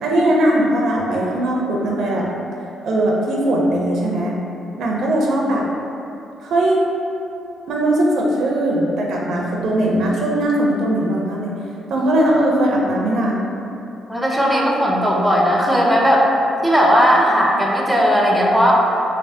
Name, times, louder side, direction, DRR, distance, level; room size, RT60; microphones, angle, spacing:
voice 1, 0.0-2.3 2.8-4.3 4.8-5.6 6.4-6.8 7.7-11.5 11.9-13.5, right 1 dB, 75° right, -3 dB, 0.4 m, -19 dB
voice 2, 14.1-16.3 16.6-18.7, equal, 5° right, -3 dB, 0.4 m, -16 dB
3.3 x 2.0 x 2.6 m, 2.8 s
cardioid pair, 90°, 0 cm